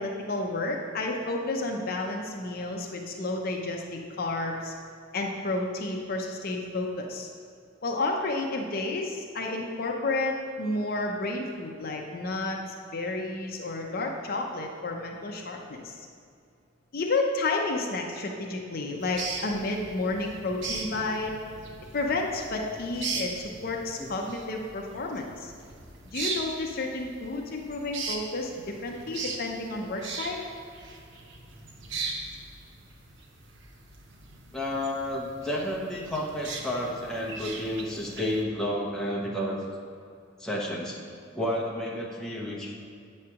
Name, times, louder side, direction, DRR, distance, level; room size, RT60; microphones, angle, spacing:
voice 1, 0.0-4.7 5.1-7.3 7.8-12.6 12.9-16.0 16.9-21.3 21.9-25.5 26.1-30.4, left 2 dB, 50° left, 1 dB, 0.6 m, -31 dB
sound 1, 19.0-38.4, right 3 dB, 80° right, 0.9 m, -39 dB
voice 2, 34.5-39.6 40.4-41.0 41.3-42.7, left 1 dB, 5° left, -4 dB, 0.9 m, -31 dB
8.4 x 3.2 x 5.8 m, 2.4 s
head